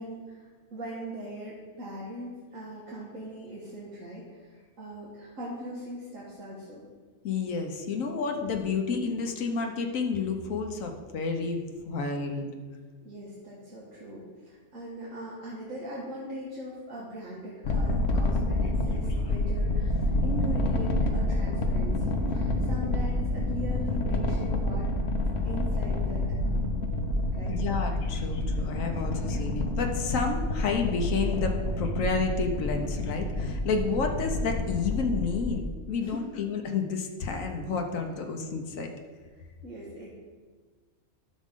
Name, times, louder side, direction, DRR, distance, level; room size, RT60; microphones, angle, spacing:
voice 1, 0.0-6.9 13.0-24.9 25.4-26.7 27.3-27.6 36.0-36.2 39.6-40.1, equal, 80° right, -6 dB, 1.8 m, -40 dB
voice 2, 7.2-12.5 27.5-38.9, left 4 dB, 90° left, 4 dB, 1.3 m, -30 dB
sound 1, 17.6-35.6, left 1 dB, 60° left, 1.0 m, -28 dB
11.5 x 6.3 x 3.6 m, 1.5 s
omnidirectional pair, 1.3 m